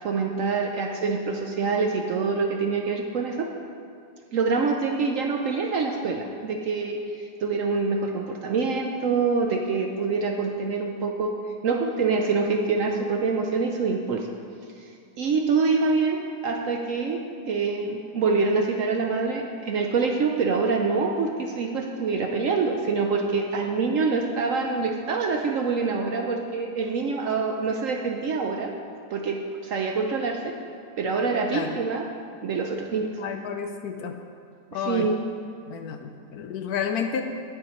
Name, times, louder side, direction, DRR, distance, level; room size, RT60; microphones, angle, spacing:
voice 1, 0.0-3.5 4.3-11.3 11.6-14.3 14.8-14.9 15.2-17.2 17.5-28.7 29.1-30.5 31.0-32.0 32.4-33.1 34.9-35.2, right 4 dB, 65° right, 3 dB, 0.8 m, -25 dB
voice 2, 33.2-34.2 34.7-35.1 35.7-37.2, left 7 dB, 70° left, 6 dB, 1.0 m, -31 dB
17.5 x 7.1 x 3.1 m, 2.4 s
omnidirectional pair, 1.9 m